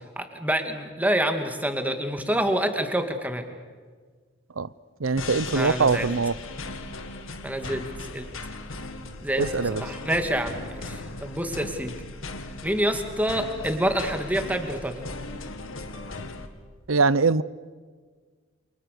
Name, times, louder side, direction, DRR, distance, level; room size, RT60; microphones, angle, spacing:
voice 1, 0.2-3.4 5.5-6.1 7.4-8.3 9.2-11.9 12.6-15.0, right 1 dB, 10° right, 6 dB, 2.3 m, -27 dB
voice 2, 5.0-6.3 9.4-9.8 16.9-17.4, right 4 dB, 75° right, 19 dB, 0.7 m, -22 dB
sound 1, 5.2-16.5, left 2 dB, 80° left, 2.0 m, -37 dB
29.0 x 27.0 x 6.8 m, 1.5 s
head